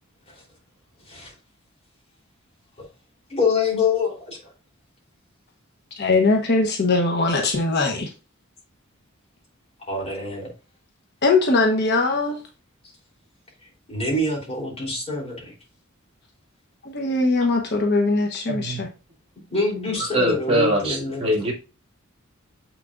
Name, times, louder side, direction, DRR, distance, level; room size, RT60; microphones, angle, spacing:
voice 1, 3.3-4.4 9.8-10.5 13.9-15.5 19.5-21.3, left 3 dB, 30° left, 3.5 m, -25 dB
voice 2, 6.0-8.1 11.2-12.4 16.8-18.9, left 3 dB, 55° left, 1.1 m, -21 dB
voice 3, 18.5-18.8 20.1-21.5, equal, 30° right, 2.4 m, -22 dB
7.4 x 6.1 x 2.5 m
head